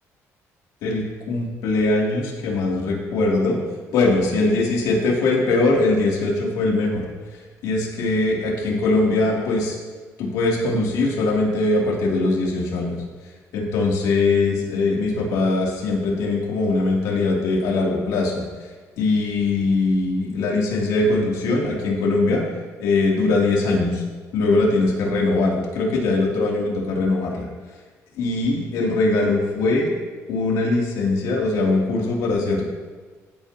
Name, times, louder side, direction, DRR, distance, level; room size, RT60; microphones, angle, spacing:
voice 1, 0.8-3.6 3.9-7.0 7.6-9.8 10.2-13.0 13.5-18.4 19.0-22.4 22.8-24.0 24.3-27.5 28.2-29.9 30.3-32.6, left 2 dB, 90° left, -3 dB, 3.1 m, -21 dB
15.5 x 9.1 x 3.0 m, 1.4 s
cardioid pair, 135°, 6 cm